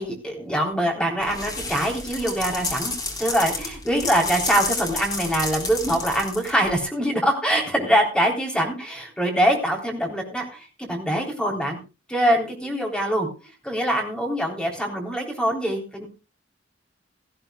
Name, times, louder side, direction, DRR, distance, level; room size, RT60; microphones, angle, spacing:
voice 1, 0.0-11.8 12.1-16.1, equal, 5° left, 1 dB, 3.6 m, -24 dB
sound 1, 1.2-6.8, left 3 dB, 20° left, 2.7 m, -31 dB
18.0 x 13.5 x 2.3 m, 0.30 s
head